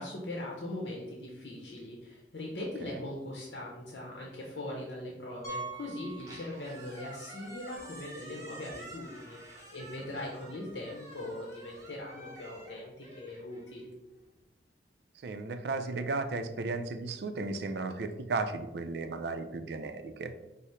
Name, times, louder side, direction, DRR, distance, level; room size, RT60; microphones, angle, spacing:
voice 1, 0.0-14.0, left 1 dB, 80° left, -2 dB, 0.7 m, -40 dB
Piano, 5.4-7.0 7.3-7.5 8.1-8.2 8.4-8.5 10.6-10.7, right 3 dB, 20° left, 0.7 m, -43 dB
Squeak, 6.1-14.3, right 1 dB, 20° right, 0.8 m, -50 dB
voice 2, 15.2-20.3, right 3 dB, 65° right, 9 dB, 0.4 m, -35 dB
4.8 x 2.0 x 4.1 m, 0.99 s
head